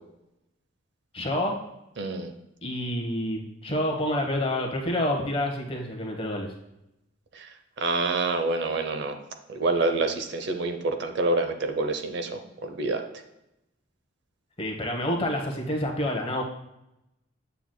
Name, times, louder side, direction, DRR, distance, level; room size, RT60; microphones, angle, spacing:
voice 1, 1.1-1.6 2.6-6.5 14.6-16.4, left 1 dB, 25° left, 1 dB, 1.1 m, -28 dB
voice 2, 2.0-2.3 7.3-7.5 7.8-9.2 9.5-13.0, right 3 dB, 55° right, 6 dB, 0.6 m, -27 dB
7.6 x 7.0 x 2.2 m, 0.88 s
head